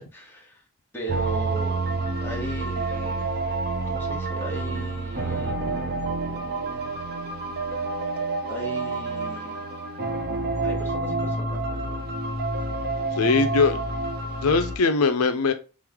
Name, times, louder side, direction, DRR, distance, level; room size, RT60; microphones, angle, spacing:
voice 1, 0.1-0.6 0.9-1.8 2.2-3.3 3.9-5.6 8.5-9.6 10.6-12.0, right 2 dB, 10° left, 1.3 m, -37 dB
sound 1, 1.1-14.8, right 2 dB, 45° right, 0.8 m, -28 dB
voice 2, 13.2-13.8 14.4-15.5, left 4 dB, 80° left, 0.5 m, -21 dB
3.5 x 3.2 x 3.5 m
head